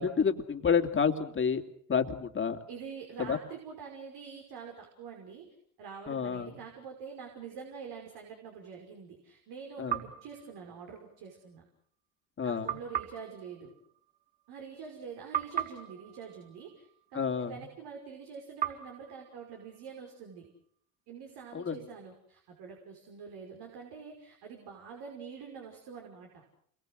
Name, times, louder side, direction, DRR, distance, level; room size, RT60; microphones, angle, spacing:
voice 1, 0.0-1.6 1.9-2.6 3.2-3.4 6.1-6.6 9.8-10.0 12.4-12.8 17.1-17.5 21.5-21.8, left 6 dB, 25° left, 6 dB, 2.8 m, -29 dB
voice 2, 2.7-5.5 5.8-11.6 12.4-13.7 14.5-20.5 21.1-26.4, right 6 dB, 60° right, 2 dB, 5.7 m, -46 dB
sound 1, 9.9-11.3 12.7-15.0 15.3-17.6 18.6-20.5, right 10 dB, 20° right, 5.0 m, -39 dB
29.0 x 23.0 x 6.5 m, 0.66 s
hypercardioid pair, 85°, 43 cm